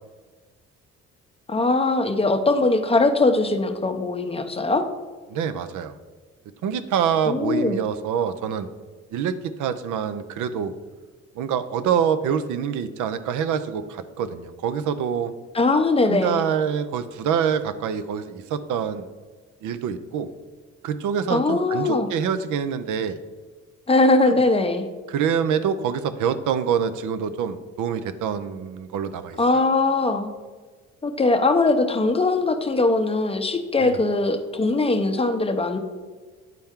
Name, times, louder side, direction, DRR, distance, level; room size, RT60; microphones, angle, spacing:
voice 1, 1.5-4.9 7.2-7.8 15.5-16.4 21.3-22.1 23.9-24.9 29.4-30.3 31.0-35.8, left 2 dB, 20° left, 7 dB, 0.6 m, -21 dB
voice 2, 5.3-5.9 6.6-8.7 9.1-9.3 9.6-10.7 11.4-15.3 16.1-19.1 19.6-20.3 20.8-23.2 24.3-24.4 25.1-29.7 33.8-34.0, right 7 dB, 80° right, 12 dB, 0.6 m, -26 dB
9.2 x 4.3 x 3.6 m, 1.4 s
cardioid pair, 90°, 30 cm